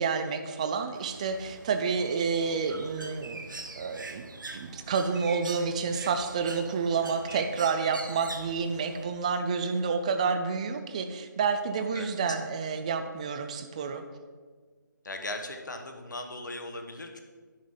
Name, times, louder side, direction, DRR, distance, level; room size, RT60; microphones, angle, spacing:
voice 1, 0.0-3.4 3.8-4.3 4.5-14.0, right 5 dB, 20° right, 7 dB, 0.4 m, -29 dB
Bird, 0.9-9.0, right 3 dB, 70° right, 0.9 m, -43 dB
voice 2, 15.0-17.2, left 2 dB, 65° left, 4 dB, 1.2 m, -38 dB
10.5 x 6.2 x 3.7 m, 1.5 s
figure-of-eight pair, 150°, 11 cm